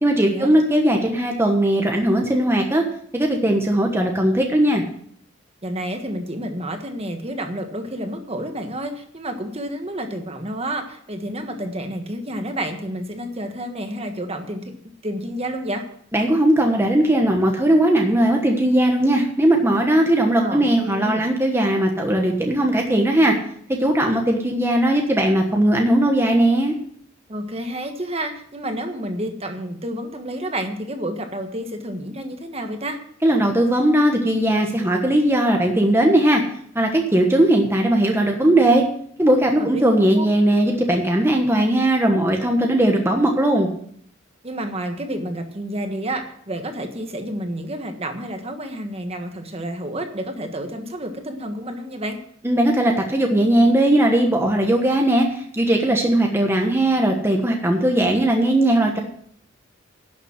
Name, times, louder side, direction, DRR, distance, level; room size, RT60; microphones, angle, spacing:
voice 1, 0.0-2.8 3.1-4.8 16.1-23.4 23.7-26.7 33.2-36.4 36.7-38.8 39.2-43.7 52.4-59.0, right 1 dB, 10° right, 1 dB, 1.3 m, -18 dB
voice 2, 5.6-14.7 15.0-15.8 20.4-21.2 27.3-33.0 39.6-39.8 40.1-40.3 44.4-52.2, right 1 dB, 30° right, 5 dB, 1.5 m, -30 dB
11.5 x 7.3 x 7.5 m, 0.63 s
head